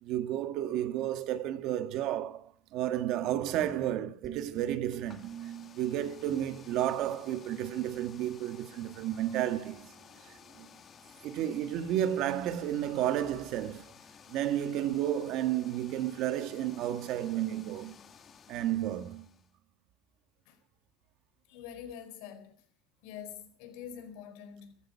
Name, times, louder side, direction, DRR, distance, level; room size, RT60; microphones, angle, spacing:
voice 1, 0.0-5.3 5.8-9.9 10.2-10.7 11.2-13.9 14.3-17.9 18.5-19.2, right 12 dB, 60° right, 1.5 m, -32 dB
sound 1, 4.2-7.6, right 9 dB, 35° right, 2.1 m, -48 dB
sound 2, 4.9-19.5, left 7 dB, 35° left, 2.0 m, -55 dB
voice 2, 21.5-22.6 23.0-24.8, left 8 dB, 80° left, 4.5 m, -45 dB
15.0 x 14.5 x 5.7 m
cardioid pair, 140°, 0 cm